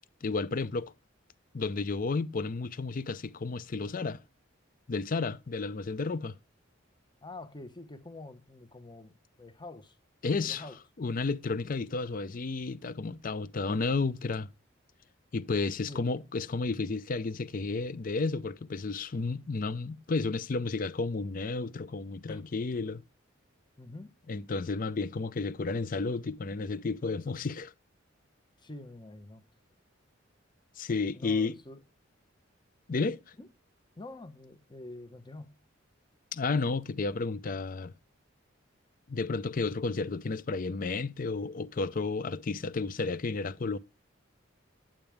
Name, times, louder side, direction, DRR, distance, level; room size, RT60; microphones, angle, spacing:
voice 1, 0.2-0.9 1.5-4.2 4.9-6.3 10.2-10.6 11.0-14.5 15.3-23.0 24.3-27.7 30.8-31.5 32.9-33.2 36.3-37.9 39.1-43.8, left 3 dB, 45° left, 0.5 m, -32 dB
voice 2, 7.2-10.0 10.4-10.8 15.9-16.1 22.3-22.4 23.8-24.1 28.6-29.4 31.1-31.8 33.4-33.5 34.0-35.5, left 2 dB, 20° left, 0.9 m, -46 dB
8.9 x 8.8 x 3.4 m
head